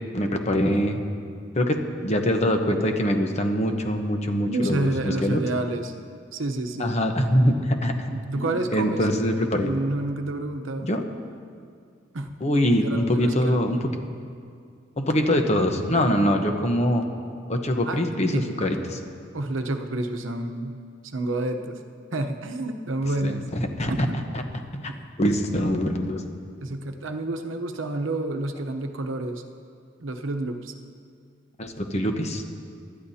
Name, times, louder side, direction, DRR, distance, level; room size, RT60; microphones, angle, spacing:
voice 1, 0.1-1.0 1.5-5.4 6.8-8.1 8.4-9.7 10.8-11.0 12.4-13.8 15.0-17.0 17.5-19.0 23.2-23.9 24.7-24.9 25.2-26.2 31.6-32.4, equal, 35° left, 5 dB, 1.0 m, -23 dB
voice 2, 4.5-5.9 6.3-6.9 8.1-9.1 9.6-10.9 12.1-12.4 12.8-13.6 17.8-18.0 18.3-18.5 19.3-21.8 22.1-23.5 23.9-24.2 24.9-25.0 26.6-29.4 30.0-30.7, right 2 dB, 75° right, 6 dB, 0.9 m, -29 dB
25.0 x 12.0 x 2.8 m, 2.2 s
head